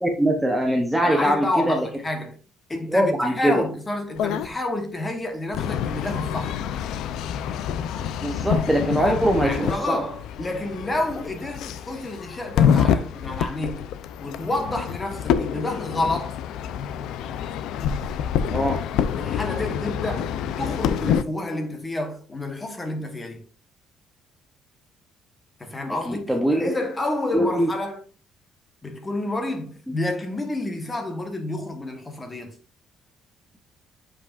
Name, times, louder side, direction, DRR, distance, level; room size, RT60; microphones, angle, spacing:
voice 1, 0.0-1.9 2.9-3.5 8.2-9.9 18.5-18.8 26.1-26.7 27.3-27.7, right 1 dB, 5° right, 0.8 m, -22 dB
voice 2, 1.0-2.4 2.7-6.6 9.0-13.9 14.2-16.4 19.2-23.4 25.6-28.0 28.8-32.5, left 2 dB, 15° left, 1.2 m, -29 dB
sound 1, 4.2-4.5 5.5-21.2, left 8 dB, 75° left, 0.4 m, -27 dB
8.2 x 5.0 x 2.5 m
cardioid pair, 150°, 0 cm